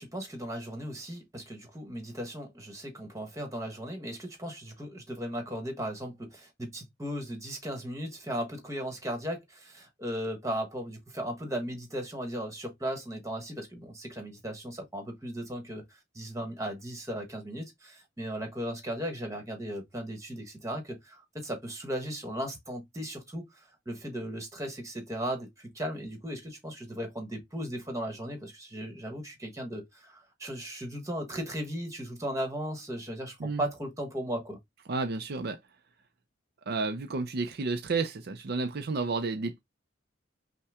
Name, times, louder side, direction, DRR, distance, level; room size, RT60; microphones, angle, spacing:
voice 1, 0.0-23.5 23.8-34.6, equal, 15° right, 1.3 m, -36 dB
voice 2, 34.9-35.6 36.7-39.6, right 3 dB, 60° right, 0.5 m, -31 dB
5.6 x 2.2 x 3.5 m
head